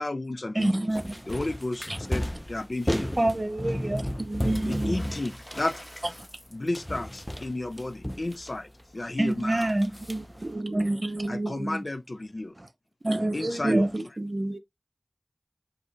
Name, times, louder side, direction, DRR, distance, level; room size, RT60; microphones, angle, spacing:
voice 1, 0.0-1.0 1.3-3.2 4.6-6.2 6.5-9.7 11.3-12.6 13.3-14.2, left 2 dB, 70° left, 0.5 m, -33 dB
voice 2, 0.5-1.3 1.9-2.0 3.2-4.2 9.2-11.1 12.6-12.7 13.0-13.9, right 1 dB, 45° right, 0.9 m, -28 dB
sound 1, 0.9-6.5 6.7-8.8 9.3-10.5, equal, 10° left, 0.6 m, -34 dB
voice 3, 4.2-5.1 10.1-11.8 13.1-13.4 13.6-14.6, right 2 dB, 65° right, 0.5 m, -30 dB
Water / Splash splatter, 4.5-6.9 10.2-10.3 10.6-11.3 12.4-12.5, equal, 35° left, 1.9 m, -43 dB
4.9 x 2.8 x 3.8 m
wide cardioid pair, 45°, 0 cm